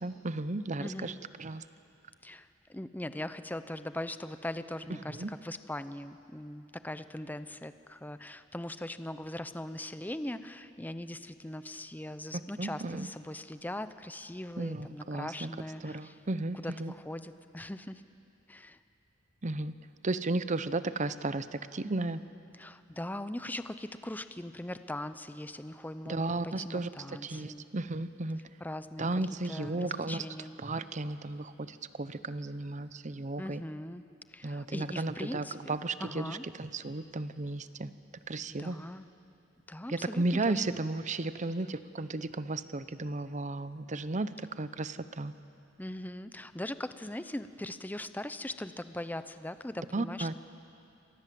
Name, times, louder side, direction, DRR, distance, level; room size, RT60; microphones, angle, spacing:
voice 1, 0.0-1.1 1.4-1.6 5.2-5.3 12.6-13.1 14.6-15.5 15.8-16.9 19.4-19.7 20.0-21.5 21.7-22.2 26.1-26.9 27.2-28.4 29.0-30.2 30.6-31.7 32.0-33.6 34.4-37.9 38.3-38.8 39.9-44.3 44.6-45.3 49.9-50.4, right 2 dB, 40° right, 13 dB, 0.8 m, -34 dB
voice 2, 0.8-1.2 2.2-16.2 16.5-18.0 18.5-18.8 22.5-27.7 28.6-29.1 29.4-30.5 33.4-34.0 34.3-35.6 36.0-36.4 38.5-39.0 39.7-40.8 45.8-50.4, left 1 dB, 10° left, 11 dB, 0.7 m, -40 dB
28.5 x 23.5 x 7.7 m, 2.7 s
head